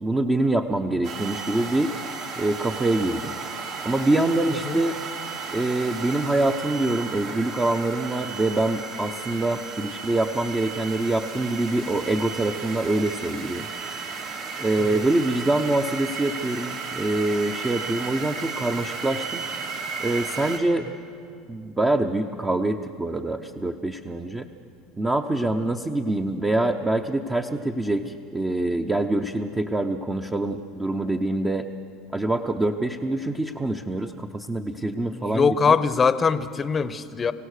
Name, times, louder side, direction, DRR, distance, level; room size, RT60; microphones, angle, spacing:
voice 1, 0.0-1.9 2.4-3.3 3.8-5.0 5.5-13.7 14.6-19.4 20.0-20.9 21.5-24.5 25.0-31.7 32.1-35.7, right 2 dB, 15° right, 4 dB, 0.8 m, -25 dB
sound 1, 1.0-20.6, right 5 dB, 65° right, 2.7 m, -34 dB
voice 2, 35.0-37.3, left 5 dB, 25° left, 14 dB, 0.8 m, -22 dB
25.0 x 16.0 x 6.6 m, 2.4 s
supercardioid pair, 105°, 0 cm